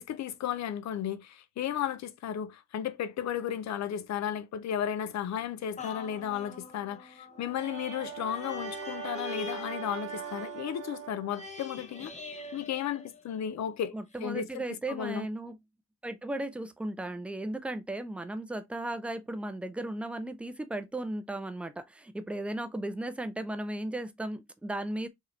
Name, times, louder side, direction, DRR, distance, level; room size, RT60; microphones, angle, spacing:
voice 1, 0.0-13.9 14.2-15.3, left 9 dB, 70° left, 0.7 m, -34 dB
sound 1, 5.8-13.6 14.1-14.2, left 4 dB, 25° left, 0.9 m, -44 dB
Brass instrument, 7.3-11.6, right 14 dB, 65° right, 0.4 m, -41 dB
voice 2, 13.9-15.6 16.0-25.1, right 1 dB, 5° right, 0.4 m, -36 dB
4.7 x 3.0 x 3.2 m
wide cardioid pair, 180°, 29 cm